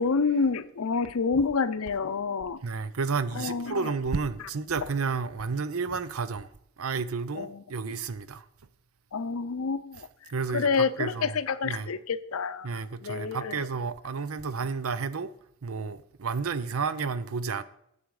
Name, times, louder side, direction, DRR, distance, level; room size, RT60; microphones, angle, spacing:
voice 1, 0.0-2.6 3.3-3.9 7.4-7.6 9.1-10.1 10.5-13.7, left 5 dB, 85° left, 0.6 m, -28 dB
voice 2, 2.6-6.5 6.8-8.4 10.3-11.4 11.6-11.9 12.6-15.3 15.6-17.6, right 5 dB, 90° right, 0.6 m, -31 dB
10.5 x 7.2 x 4.8 m
head